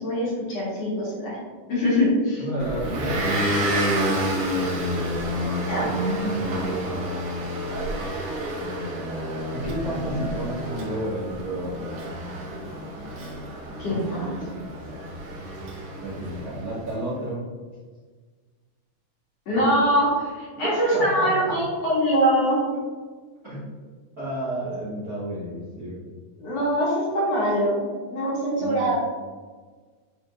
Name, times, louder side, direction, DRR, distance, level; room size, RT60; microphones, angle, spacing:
voice 1, 0.0-1.4 1.7-2.4 5.7-6.2 13.8-14.4 19.5-22.6 26.4-27.8 28.1-28.9, equal, 55° left, -7 dB, 2.8 m, -23 dB
voice 2, 2.4-3.5 5.1-5.8 6.1-6.8 9.5-11.9 16.0-17.4 20.5-21.6 23.4-23.6 24.2-26.0 28.6-28.9, right 1 dB, 35° right, -10 dB, 1.7 m, -31 dB
Motor vehicle (road) / Engine, 2.6-16.8, equal, 65° right, 1.3 m, -29 dB
9.6 x 4.3 x 2.6 m, 1.5 s
omnidirectional pair, 3.9 m